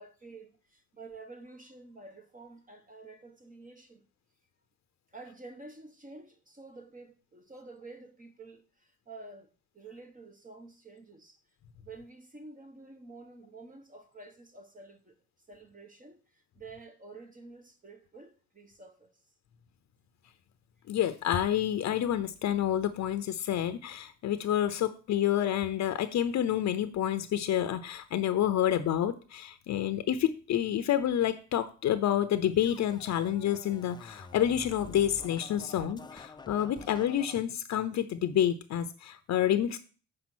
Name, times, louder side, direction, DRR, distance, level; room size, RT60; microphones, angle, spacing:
voice 1, 0.0-4.1 5.1-11.4 11.8-19.2, right 3 dB, 25° right, 1.2 m, -50 dB
voice 2, 20.9-39.8, left 10 dB, 65° left, 0.7 m, -28 dB
Scratching (performance technique), 32.6-37.4, left 3 dB, 15° left, 0.6 m, -49 dB
7.3 x 4.9 x 6.1 m
cardioid pair, 90°, 30 cm